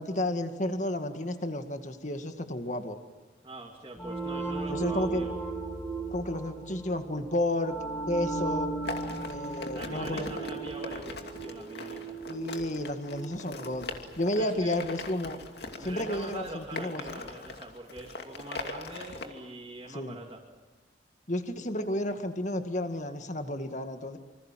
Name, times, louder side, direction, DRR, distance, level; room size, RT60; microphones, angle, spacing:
voice 1, 0.0-3.0 4.7-5.2 6.1-7.8 8.1-8.7 9.2-10.3 12.3-13.9 14.2-15.4 15.8-17.2 19.9-20.2 21.3-24.2, left 1 dB, 40° left, 7 dB, 2.0 m, -32 dB
voice 2, 3.4-5.3 9.7-12.2 14.3-14.8 15.8-20.4, right 1 dB, 25° right, -3 dB, 3.0 m, -43 dB
sound 1, 3.9-14.4, right 3 dB, 10° left, 5.8 m, -36 dB
sound 2, 8.9-19.3, left 2 dB, 65° left, 2.6 m, -41 dB
27.5 x 26.0 x 7.6 m, 1.2 s
head